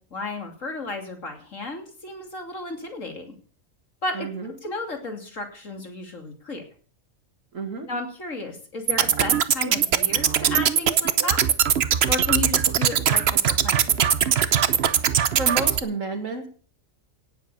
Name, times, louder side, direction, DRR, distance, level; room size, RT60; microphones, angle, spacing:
voice 1, 0.0-3.3 4.0-6.6 7.8-11.4 12.1-14.0, left 3 dB, 70° left, 4 dB, 3.3 m, -33 dB
voice 2, 4.1-4.5 7.5-7.9 14.9-16.5, right 3 dB, 70° right, 4 dB, 2.4 m, -31 dB
sound 1, 8.9-15.8, right 8 dB, 55° right, 1.0 m, -21 dB
17.5 x 7.8 x 6.9 m, 0.43 s
omnidirectional pair, 1.4 m